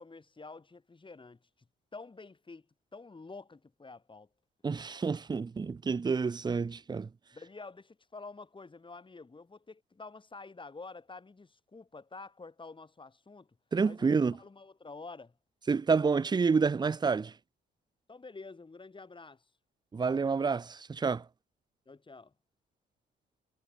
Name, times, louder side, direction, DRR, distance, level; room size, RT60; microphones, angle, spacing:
voice 1, 0.0-1.4 1.9-2.7 2.9-4.3 5.6-5.8 7.3-13.5 13.8-15.3 18.1-19.4 21.9-22.3, left 3 dB, 25° left, 7.0 m, -48 dB
voice 2, 4.6-7.1 13.7-14.4 15.7-17.3 19.9-21.3, right 5 dB, 20° right, 0.5 m, -28 dB
cardioid pair, 90°, 20 cm